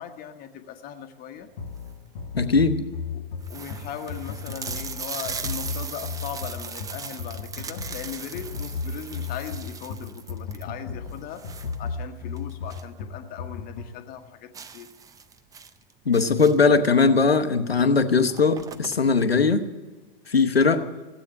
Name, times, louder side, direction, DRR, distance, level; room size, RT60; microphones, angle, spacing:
voice 1, 0.0-1.5 3.1-3.2 3.5-11.5 11.8-14.9 20.7-21.0, left 9 dB, 30° left, 1.3 m, -38 dB
sound 1, 1.6-14.0, left 4 dB, 55° left, 1.2 m, -35 dB
sound 2, 1.6-2.1 2.7-2.8 3.0-3.1 3.4-13.0 13.3-13.4 13.8-13.9 14.5-16.8 17.7-17.9 18.1-19.3, right 6 dB, 10° right, 0.5 m, -39 dB
voice 2, 2.4-2.8 16.0-19.7 20.3-20.8, left 4 dB, 85° left, 1.0 m, -20 dB
16.0 x 8.4 x 9.8 m
figure-of-eight pair, 100°, 29 cm